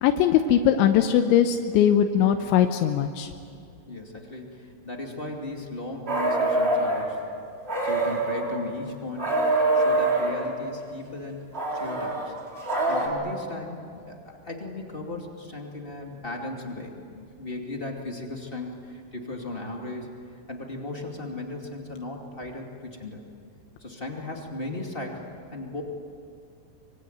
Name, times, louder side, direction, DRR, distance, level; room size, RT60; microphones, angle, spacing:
voice 1, 0.0-3.3, left 9 dB, 80° left, 6 dB, 3.2 m, -20 dB
voice 2, 3.9-7.3 7.8-11.4 11.7-12.3 12.9-23.2 23.8-25.2 25.5-25.8, left 2 dB, 20° left, 1 dB, 1.4 m, -37 dB
sound 1, 6.1-7.1 7.7-8.6 9.2-10.5 11.5-13.1, right 2 dB, 15° right, 3.9 m, -24 dB
25.0 x 25.0 x 9.3 m, 2.3 s
omnidirectional pair, 5.4 m